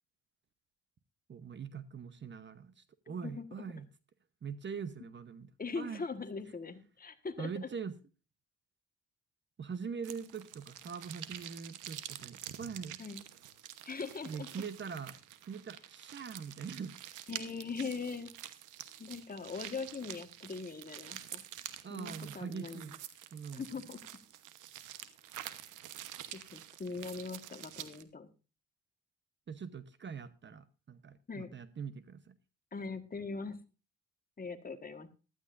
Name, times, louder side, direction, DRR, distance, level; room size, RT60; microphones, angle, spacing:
voice 1, 1.3-3.9 4.4-5.5 5.8-6.0 7.4-8.0 9.6-13.0 14.2-15.2 15.5-17.0 21.8-22.9 23.3-23.8 29.5-32.4, right 6 dB, 40° right, 0.9 m, -43 dB
voice 2, 3.1-3.7 5.6-7.5 13.0-13.2 13.8-14.5 17.3-18.3 19.0-21.4 21.9-23.0 23.5-24.0 26.3-28.3 31.3-31.5 32.7-33.6 34.4-35.1, left 4 dB, 30° left, 1.5 m, -41 dB
sound 1, 10.0-28.0, right 12 dB, 90° right, 1.1 m, -48 dB
15.5 x 12.5 x 2.6 m
cardioid pair, 90°, 30 cm